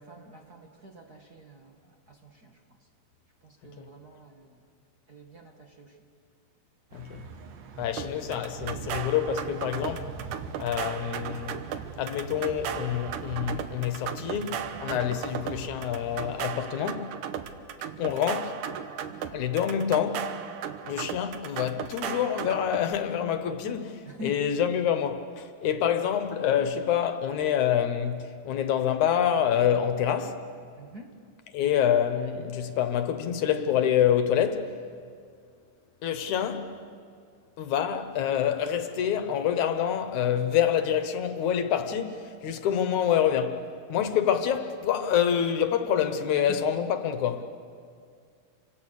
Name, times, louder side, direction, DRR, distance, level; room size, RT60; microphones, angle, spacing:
voice 1, 0.0-2.9 3.4-4.6 5.1-6.0 14.9-15.2 24.1-24.4 30.8-31.2 46.3-46.6, equal, 35° right, 1.9 m, -46 dB
voice 2, 6.9-7.2 7.8-10.1 10.6-11.6 12.0-17.2 18.0-18.6 19.3-20.4 20.8-30.4 31.5-34.8 36.0-36.8 37.6-43.6 43.9-47.4, left 9 dB, 75° left, 2.5 m, -27 dB
sound 1, 6.9-16.4, right 5 dB, 65° right, 2.5 m, -43 dB
sound 2, 8.0-22.8, right 8 dB, 85° right, 2.6 m, -36 dB
30.0 x 25.0 x 6.6 m
omnidirectional pair, 3.5 m